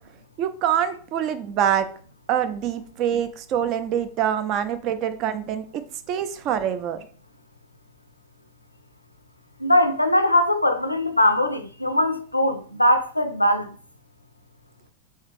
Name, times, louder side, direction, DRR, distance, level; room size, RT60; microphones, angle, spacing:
voice 1, 0.4-1.9 2.3-5.8 6.1-7.1, right 9 dB, 40° right, 0.4 m, -25 dB
voice 2, 9.6-13.7, left 1 dB, 85° left, 0.4 m, -21 dB
3.3 x 3.2 x 3.1 m
figure-of-eight pair, 90°, 0 cm